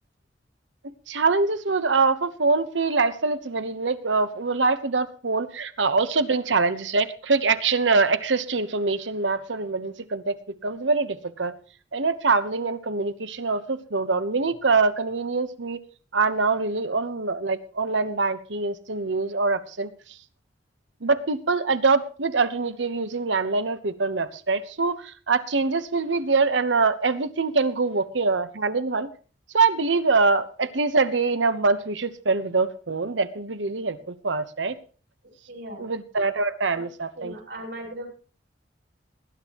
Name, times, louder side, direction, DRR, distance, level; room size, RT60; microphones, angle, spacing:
voice 1, 1.1-10.4 10.6-11.5 11.9-15.8 16.1-19.9 21.0-29.1 29.5-34.8 35.8-37.3, right 4 dB, 90° right, 12 dB, 1.1 m, -24 dB
voice 2, 35.5-35.9 36.7-36.9 37.1-38.1, right 1 dB, 70° right, 0 dB, 5.6 m, -38 dB
19.5 x 11.0 x 3.0 m, 0.40 s
head